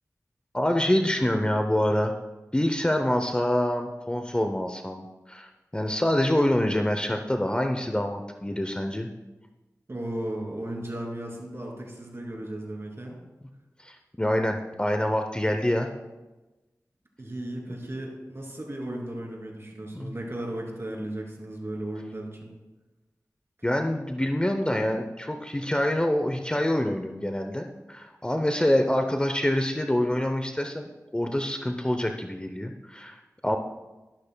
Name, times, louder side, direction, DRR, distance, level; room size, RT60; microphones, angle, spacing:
voice 1, 0.5-2.1 2.5-9.1 13.8-15.9 19.9-20.1 23.6-33.6, left 1 dB, 15° left, 5 dB, 0.6 m, -26 dB
voice 2, 9.9-13.2 17.2-22.5, right 1 dB, 45° right, -1 dB, 2.8 m, -35 dB
12.0 x 12.0 x 2.2 m, 1.1 s
wide cardioid pair, 70°, 6 cm